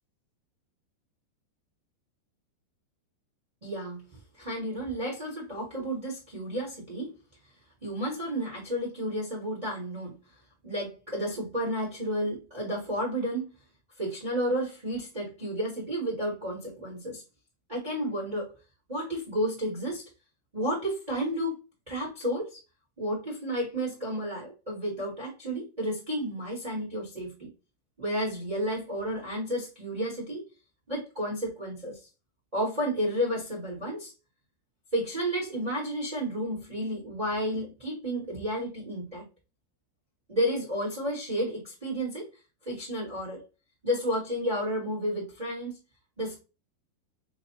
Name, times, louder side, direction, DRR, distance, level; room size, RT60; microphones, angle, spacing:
voice 1, 3.6-4.0 4.4-7.1 7.8-10.1 10.6-13.5 14.0-17.2 17.7-18.5 18.9-20.0 20.5-21.6 21.9-22.6 23.0-27.5 28.0-30.4 30.9-32.1 32.5-34.1 34.9-39.2 40.3-42.3 42.6-43.4 43.8-45.8 46.2-46.4, equal, 15° right, -4 dB, 1.4 m, -31 dB
6.7 x 2.8 x 2.7 m, 0.29 s
omnidirectional pair, 4.8 m